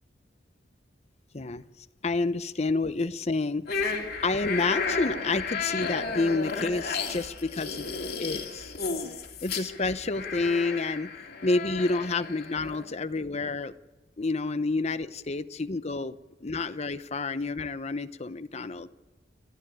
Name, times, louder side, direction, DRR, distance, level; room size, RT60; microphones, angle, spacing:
voice 1, 1.3-1.7 2.0-4.0 4.2-7.9 8.2-8.7 9.4-11.1 11.4-13.7 14.2-18.9, left 3 dB, 35° left, 12 dB, 0.8 m, -29 dB
sound 1, 3.7-12.8, left 4 dB, 55° left, 2.5 m, -33 dB
28.5 x 12.5 x 9.1 m, 1.2 s
head